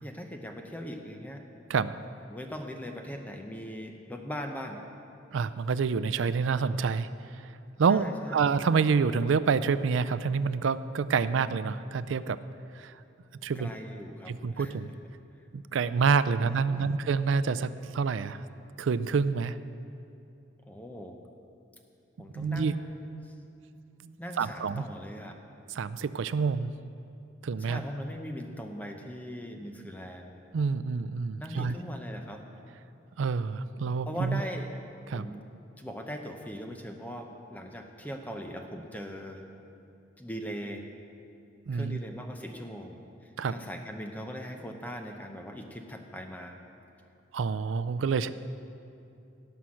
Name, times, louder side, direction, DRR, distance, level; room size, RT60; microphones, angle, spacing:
voice 1, 0.0-1.4 2.3-4.8 7.9-8.4 13.5-14.9 16.4-17.1 20.7-21.2 22.2-23.3 24.2-25.4 27.6-30.4 31.4-32.4 34.1-34.7 35.1-35.4 35.8-39.5 40.2-40.8 41.7-46.6, equal, 10° left, 3 dB, 0.8 m, -40 dB
voice 2, 5.3-7.1 7.8-8.1 8.3-12.4 12.8-12.9 13.4-13.7 14.3-14.9 15.5-18.4 18.8-19.6 22.3-22.7 24.0-24.8 25.7-26.7 27.4-27.8 30.5-31.7 33.2-34.4 35.1-35.3 41.7-42.0 43.4-43.5 47.3-48.3, right 5 dB, 80° right, 14 dB, 0.4 m, -27 dB
17.5 x 5.8 x 6.3 m, 2.7 s
head